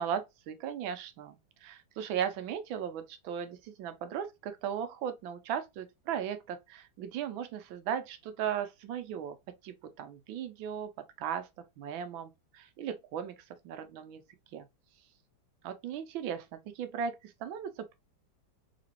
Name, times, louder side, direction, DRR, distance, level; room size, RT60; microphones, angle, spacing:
voice 1, 0.0-9.4 9.6-10.9 11.2-11.5 11.8-13.3 13.6-14.2 14.5-14.7 15.6-18.0, right 8 dB, 85° right, 1.4 m, -37 dB
3.8 x 2.9 x 2.8 m
omnidirectional pair, 2.1 m